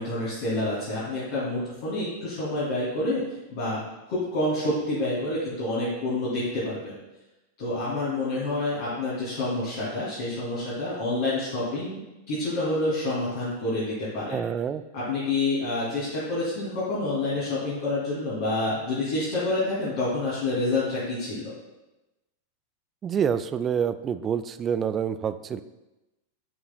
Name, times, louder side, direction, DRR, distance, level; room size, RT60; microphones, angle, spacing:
voice 1, 0.0-3.2 3.5-3.8 4.1-7.0 7.6-12.0 12.3-14.4 14.9-21.5, left 2 dB, 50° left, -10 dB, 2.6 m, -28 dB
voice 2, 14.3-14.8 23.0-25.6, right 7 dB, 25° right, 12 dB, 0.3 m, -27 dB
11.0 x 5.4 x 2.2 m, 1.0 s
figure-of-eight pair, 90°, 0 cm